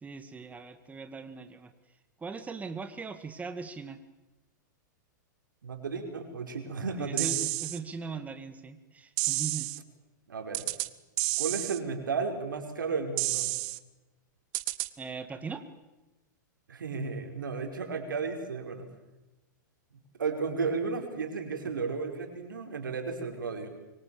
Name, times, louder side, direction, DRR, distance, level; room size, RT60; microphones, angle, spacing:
voice 1, 0.0-1.7 2.2-4.0 7.0-9.7 15.0-15.6, right 4 dB, 15° right, 9 dB, 2.0 m, -40 dB
voice 2, 5.6-7.3 10.3-10.6 11.4-13.5 16.7-18.9 19.9-23.7, right 5 dB, 85° right, 5 dB, 5.1 m, -33 dB
sound 1, 7.2-7.8 9.2-9.8 10.5-10.9 11.2-11.8 13.2-13.8 14.5-14.9, right 23 dB, 50° right, 1.2 m, -30 dB
25.5 x 24.5 x 7.2 m, 1.1 s
hypercardioid pair, 110°, 10 cm